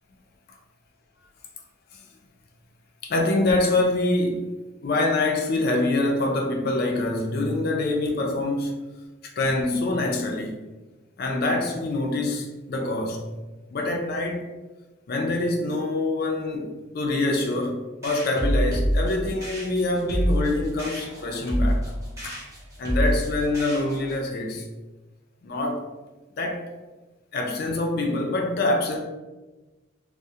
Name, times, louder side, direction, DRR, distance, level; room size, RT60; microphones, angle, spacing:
voice 1, 3.0-4.5 4.8-8.8 9.4-10.6 11.2-13.3 13.7-14.4 15.1-21.9 22.2-22.4 22.8-24.7 25.4-25.8 26.4-26.6 27.3-29.0, left 2 dB, 50° left, 0.4 m, -25 dB
sound 1, 18.0-24.2, equal, 15° right, 0.6 m, -27 dB
2.3 x 2.0 x 2.7 m
head